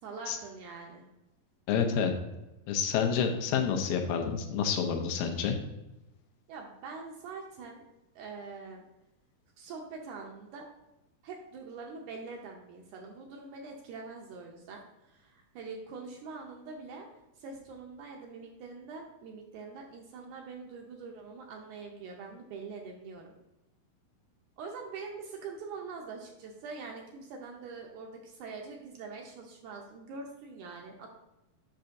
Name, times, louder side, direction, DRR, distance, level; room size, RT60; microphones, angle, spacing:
voice 1, 0.0-1.0 6.5-7.8 8.2-8.8 9.6-10.6 11.2-17.1 17.4-23.3 24.6-31.1, right 4 dB, 80° right, 1 dB, 1.9 m, -44 dB
voice 2, 1.7-2.1 2.7-5.6, left 7 dB, 85° left, 5 dB, 2.4 m, -28 dB
7.5 x 5.7 x 2.6 m, 0.95 s
omnidirectional pair, 4.0 m